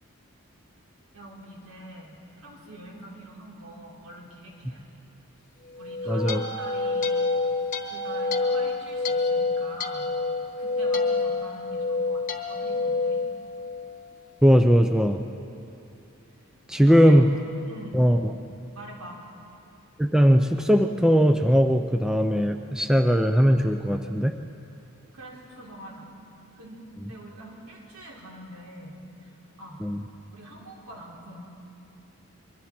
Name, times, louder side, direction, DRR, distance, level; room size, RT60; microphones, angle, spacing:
voice 1, 1.1-5.1 5.7-7.3 7.8-10.1 10.6-13.2 16.8-17.3 17.7-18.0 18.7-19.2 25.1-26.1 26.5-29.8 30.3-31.4, right 1 dB, 80° right, -2 dB, 3.8 m, -44 dB
sound 1, 5.8-14.1, left 3 dB, 35° left, 1.2 m, -27 dB
voice 2, 6.1-6.4 14.4-15.2 16.7-17.3 17.9-18.2 20.0-24.4 29.8-30.0, equal, 5° right, 5 dB, 0.5 m, -19 dB
26.5 x 23.0 x 4.4 m, 2.8 s
head